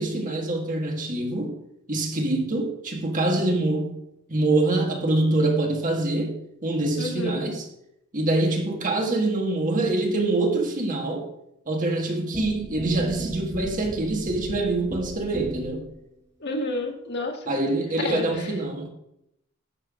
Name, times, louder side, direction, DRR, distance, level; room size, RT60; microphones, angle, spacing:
voice 1, 0.0-1.6 1.9-4.0 4.3-7.7 8.1-11.3 11.7-15.9 17.5-18.9, right 2 dB, 40° right, 1.6 m, -25 dB
voice 2, 7.0-7.4 16.4-17.5 18.0-18.5, left 1 dB, 55° left, 1.9 m, -30 dB
sound 1, 12.3-15.9, right 1 dB, 15° right, 1.1 m, -36 dB
18.5 x 6.7 x 2.5 m
head